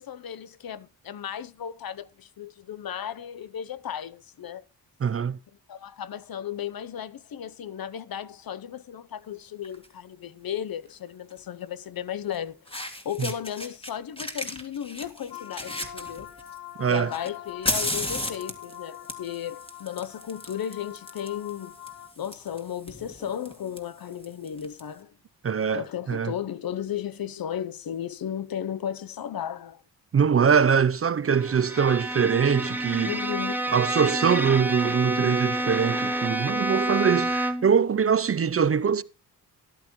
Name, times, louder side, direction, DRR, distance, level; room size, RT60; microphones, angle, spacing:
voice 1, 0.0-4.6 5.7-12.6 13.0-16.3 16.9-21.8 22.2-25.1 25.7-29.8 33.0-33.7, left 9 dB, 60° left, 0.7 m, -35 dB
voice 2, 5.0-5.4 13.2-13.3 16.8-17.1 25.4-26.3 30.1-33.1 33.7-39.0, right 7 dB, 35° right, 0.5 m, -23 dB
Fire, 9.6-9.9 11.3-11.4 12.3-12.4 12.7-13.9 14.2-16.6 17.1-24.8, left 1 dB, 15° left, 2.0 m, -35 dB
sound 1, 15.3-22.1, left 11 dB, 75° left, 1.7 m, -44 dB
Bowed string instrument, 31.3-37.8, right 1 dB, 5° right, 1.0 m, -28 dB
13.5 x 11.5 x 3.0 m
cardioid pair, 65°, 41 cm